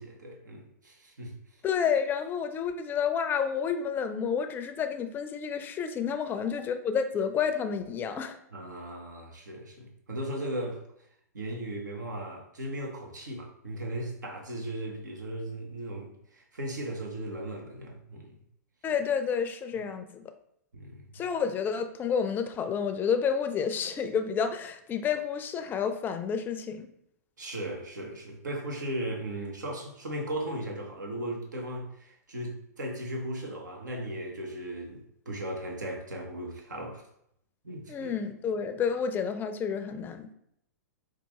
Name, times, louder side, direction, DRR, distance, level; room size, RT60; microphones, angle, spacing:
voice 1, 0.0-1.4 8.5-10.8 11.3-18.4 20.7-21.2 27.4-37.0 37.6-38.1, right 1 dB, 85° right, 0.9 m, -37 dB
voice 2, 1.6-8.4 18.8-20.2 21.1-26.9 37.9-40.3, left 7 dB, 20° left, 0.4 m, -30 dB
4.6 x 2.4 x 2.9 m
hypercardioid pair, 115°, 9 cm